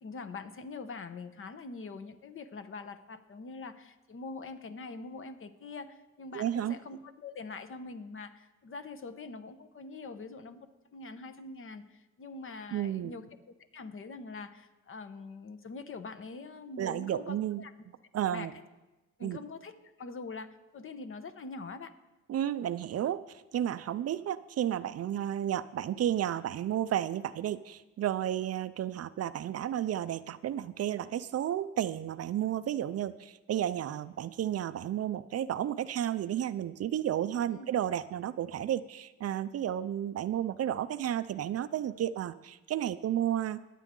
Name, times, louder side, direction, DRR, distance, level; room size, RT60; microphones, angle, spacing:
voice 1, 0.0-10.7 10.9-13.2 13.7-17.7 18.2-18.5 19.2-21.9 37.5-37.7, left 4 dB, 45° left, 9 dB, 1.1 m, -44 dB
voice 2, 6.3-6.7 12.7-13.1 16.8-17.6 18.1-18.5 19.2-19.4 22.3-23.2 23.5-43.6, right 11 dB, 55° right, 14 dB, 0.5 m, -32 dB
21.5 x 8.3 x 3.8 m, 1.1 s
cardioid pair, 90°, 30 cm